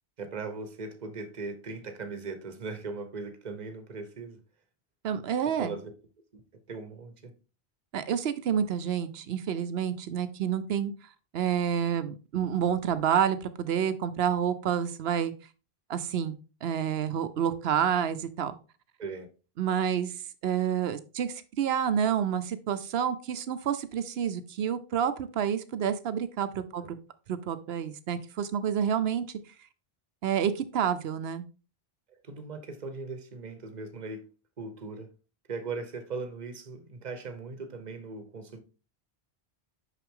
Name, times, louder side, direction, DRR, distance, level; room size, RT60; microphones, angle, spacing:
voice 1, 0.2-4.4 5.6-5.9 6.3-6.4 6.7-7.3 19.0-19.3 32.2-34.2 34.6-35.1 35.5-38.6, right 4 dB, 45° right, 1.0 m, -39 dB
voice 2, 5.0-5.7 7.9-10.9 11.3-15.3 15.9-18.6 19.6-20.1 20.4-27.0 27.3-29.4 30.2-31.4, right 8 dB, 75° right, 0.9 m, -29 dB
5.8 x 5.7 x 3.7 m
omnidirectional pair, 1.1 m